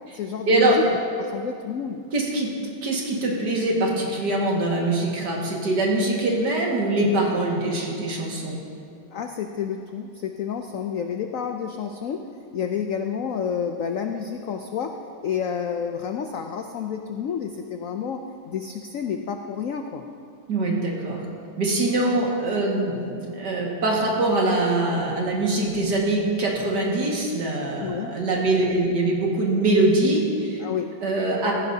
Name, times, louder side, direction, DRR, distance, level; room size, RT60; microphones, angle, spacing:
voice 1, 0.1-2.0 9.1-12.2 12.5-15.0 15.2-20.0 27.8-28.1 30.6-30.9, left 7 dB, 80° left, 5 dB, 0.7 m, -30 dB
voice 2, 2.1-2.5 2.8-8.6 20.5-21.2 21.6-30.6 31.0-31.5, right 2 dB, 60° right, -2 dB, 2.5 m, -23 dB
16.5 x 15.0 x 2.8 m, 2.4 s
omnidirectional pair, 2.1 m